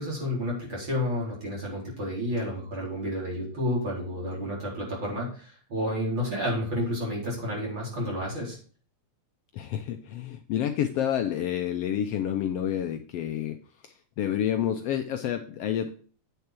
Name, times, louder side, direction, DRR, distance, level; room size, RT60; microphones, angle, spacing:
voice 1, 0.0-8.6, left 1 dB, 35° right, -4 dB, 4.8 m, -30 dB
voice 2, 9.5-13.6 13.8-15.9, left 10 dB, 90° left, 7 dB, 1.3 m, -29 dB
9.0 x 6.8 x 4.5 m, 0.42 s
omnidirectional pair, 3.5 m